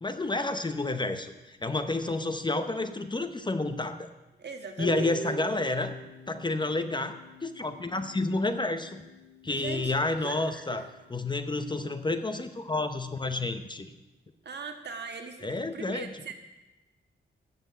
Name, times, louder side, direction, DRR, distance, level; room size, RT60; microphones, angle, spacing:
voice 1, 0.0-4.1 4.8-6.0 6.3-9.0 9.4-13.9 15.4-16.2, left 2 dB, 20° left, 9 dB, 0.8 m, -30 dB
voice 2, 4.4-5.2 9.5-10.0 10.2-10.8 14.4-16.3, right 5 dB, 55° right, 5 dB, 1.6 m, -40 dB
Harp, 4.8-10.9, right 3 dB, 70° left, 2.9 m, -44 dB
13.0 x 6.7 x 8.1 m, 1.1 s
wide cardioid pair, 105°, 20 cm